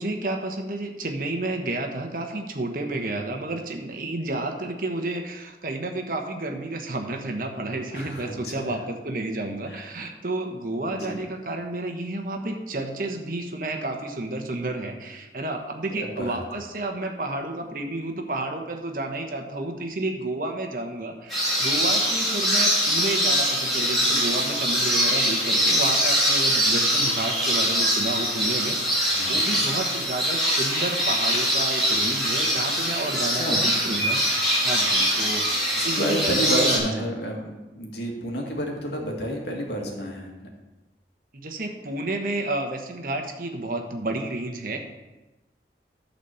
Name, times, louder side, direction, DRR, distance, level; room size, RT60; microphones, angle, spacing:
voice 1, 0.0-34.2 34.6-37.1 41.3-44.8, right 2 dB, 50° right, 4 dB, 1.1 m, -31 dB
voice 2, 7.9-8.8 9.7-9.9 10.9-11.2 16.0-16.4 29.1-29.5 33.3-33.7 35.8-40.5, equal, 75° left, 0 dB, 1.9 m, -30 dB
sound 1, 21.3-36.8, equal, ahead, 3.1 m, -23 dB
12.0 x 4.2 x 6.9 m, 1.1 s
head